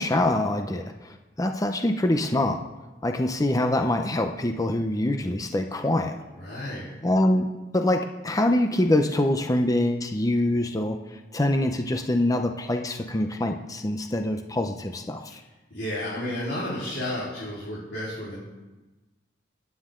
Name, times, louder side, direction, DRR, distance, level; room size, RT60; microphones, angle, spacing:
voice 1, 0.0-2.6 3.0-6.2 7.0-7.5 7.7-15.4, left 1 dB, 20° left, 5 dB, 0.7 m, -25 dB
voice 2, 6.3-7.0 15.3-15.4 15.7-18.3, left 1 dB, 60° left, -9 dB, 4.1 m, -32 dB
28.0 x 9.6 x 3.8 m, 1.1 s
head